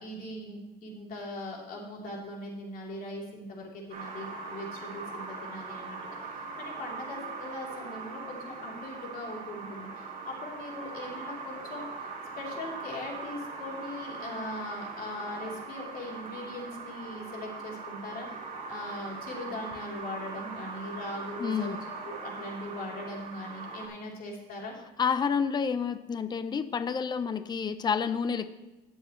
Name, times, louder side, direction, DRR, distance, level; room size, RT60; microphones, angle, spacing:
voice 1, 0.0-12.1 12.4-18.3 18.7-21.8 22.0-24.7, left 1 dB, 60° left, -3 dB, 3.4 m, -40 dB
sound 1, 3.9-23.9, right 4 dB, 50° right, 2.4 m, -41 dB
voice 2, 21.4-21.8 25.0-28.5, left 6 dB, 25° left, 12 dB, 0.5 m, -29 dB
18.5 x 7.2 x 3.1 m, 1.0 s
cardioid pair, 110°, 17 cm